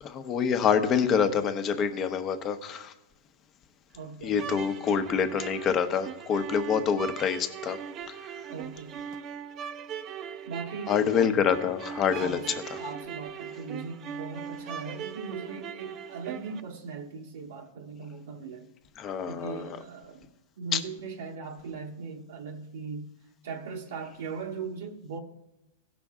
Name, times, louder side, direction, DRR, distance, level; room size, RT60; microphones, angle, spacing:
voice 1, 0.0-2.9 4.2-7.8 8.1-8.2 10.9-12.8 19.0-19.8 20.7-20.8, left 7 dB, 30° left, 9 dB, 0.8 m, -26 dB
voice 2, 3.9-4.8 8.5-9.0 10.5-11.3 12.1-12.5 12.7-18.7 19.3-20.2 20.6-23.1 23.4-25.2, right 5 dB, 75° right, -1 dB, 1.0 m, -39 dB
sound 1, 4.3-16.6, right 7 dB, 35° right, 0.5 m, -40 dB
16.5 x 6.0 x 3.6 m, 0.96 s
hypercardioid pair, 135°, 0 cm